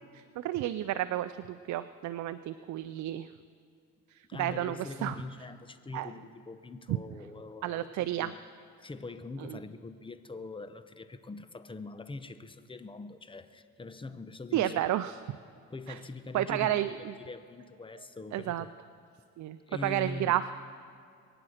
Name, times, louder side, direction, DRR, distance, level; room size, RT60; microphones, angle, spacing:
voice 1, 0.1-3.3 4.1-5.2 5.9-6.1 6.9-7.0 7.6-8.3 9.4-9.6 14.5-15.2 15.9-16.0 16.3-17.1 18.3-18.6 19.4-20.5, right 13 dB, 70° right, 0.5 m, -31 dB
voice 2, 4.3-8.4 8.8-14.8 15.7-18.7 19.7-20.5, left 3 dB, 15° left, 0.8 m, -43 dB
22.5 x 8.9 x 6.5 m
cardioid pair, 90°, 30 cm